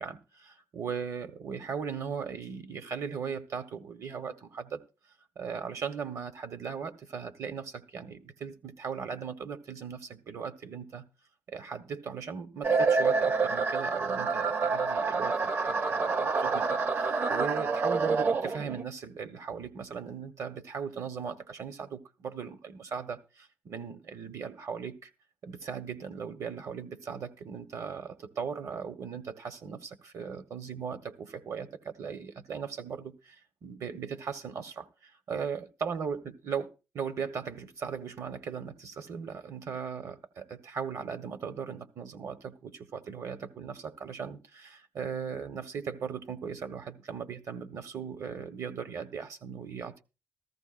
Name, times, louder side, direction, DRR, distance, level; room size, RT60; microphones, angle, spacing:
voice 1, 0.0-4.8 5.3-11.1 11.5-25.1 25.4-36.7 36.9-50.0, right 6 dB, 55° right, 1.2 m, -38 dB
sound 1, 12.6-18.8, right 4 dB, 35° right, 0.7 m, -27 dB
14.5 x 14.0 x 2.5 m
wide cardioid pair, 165°, 6 cm